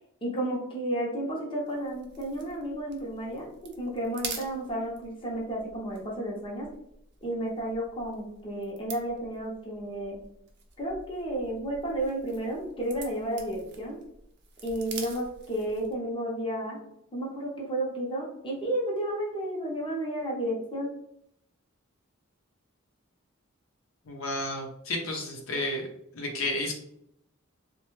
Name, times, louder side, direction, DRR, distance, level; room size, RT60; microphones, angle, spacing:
voice 1, 0.2-6.7 7.2-10.2 10.8-14.0 14.6-16.8 17.1-20.9, right 1 dB, 25° left, -2 dB, 0.7 m, -32 dB
sound 1, 1.7-16.0, right 5 dB, 55° right, 0.6 m, -46 dB
voice 2, 24.1-25.9 26.1-26.7, left 1 dB, 75° left, 1 dB, 0.7 m, -31 dB
3.2 x 2.2 x 3.1 m, 0.75 s
head